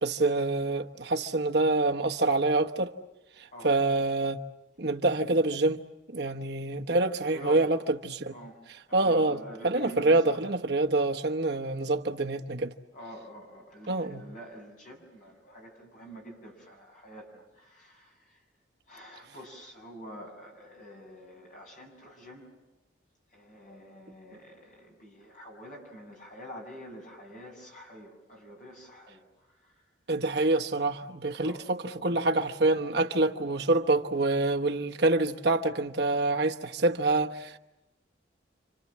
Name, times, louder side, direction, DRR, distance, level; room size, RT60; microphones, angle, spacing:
voice 1, 0.0-2.9 3.6-4.4 4.8-5.8 6.1-7.8 8.0-8.3 8.9-9.4 9.6-12.7 13.9-14.2 30.1-37.6, right 2 dB, 60° right, 1.1 m, -26 dB
voice 2, 7.2-7.7 8.3-8.6 8.9-10.4 12.9-18.1 18.9-22.5 23.3-29.2 31.4-31.6, equal, 40° left, 7.3 m, -47 dB
29.5 x 26.5 x 7.4 m
head